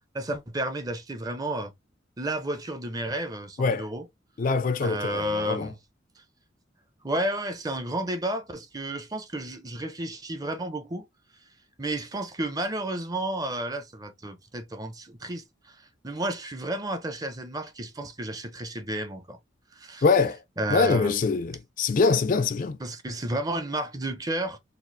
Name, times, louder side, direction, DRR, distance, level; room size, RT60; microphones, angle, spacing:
voice 1, 0.1-1.7 2.2-4.1 4.8-5.8 6.2-6.3 7.0-11.1 11.8-19.4 19.7-20.0 20.6-21.1 22.8-24.6, right 1 dB, 20° right, 0.5 m, -32 dB
voice 2, 4.4-5.7 20.0-20.4 20.7-22.8, left 4 dB, 45° left, 0.4 m, -24 dB
4.1 x 2.4 x 2.6 m
head